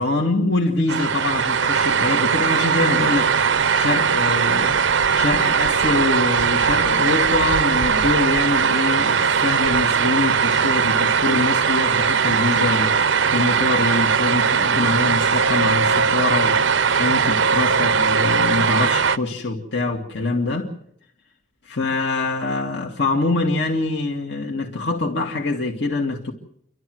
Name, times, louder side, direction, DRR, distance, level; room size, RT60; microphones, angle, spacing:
voice 1, 0.0-4.8 5.1-13.0 13.3-16.6 17.0-20.7 21.6-26.3, left 2 dB, 70° left, 2.3 m, -24 dB
sound 1, 0.9-19.2, right 6 dB, 85° right, 0.8 m, -19 dB
29.5 x 12.5 x 7.9 m
head